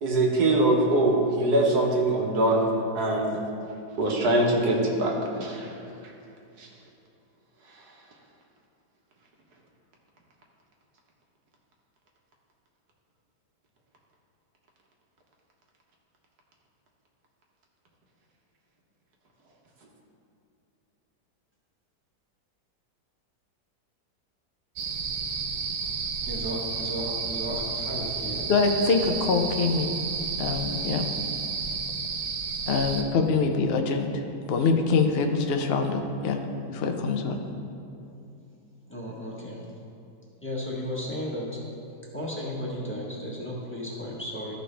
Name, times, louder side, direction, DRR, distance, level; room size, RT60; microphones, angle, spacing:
voice 1, 0.0-3.4 4.0-5.7 6.0-6.1 6.6-6.7, right 1 dB, 70° right, -1 dB, 1.6 m, -23 dB
sound 1, 24.8-33.0, right 5 dB, 85° right, 1.4 m, -31 dB
voice 2, 26.3-28.5 38.9-39.7 40.4-41.6 42.1-44.5, left 1 dB, 10° left, -6 dB, 1.2 m, -34 dB
voice 3, 28.5-30.0 30.4-31.0 32.7-34.2 34.5-36.4 36.7-37.4, left 4 dB, 65° left, 5 dB, 0.6 m, -24 dB
13.5 x 5.2 x 3.3 m, 2.6 s
omnidirectional pair, 1.8 m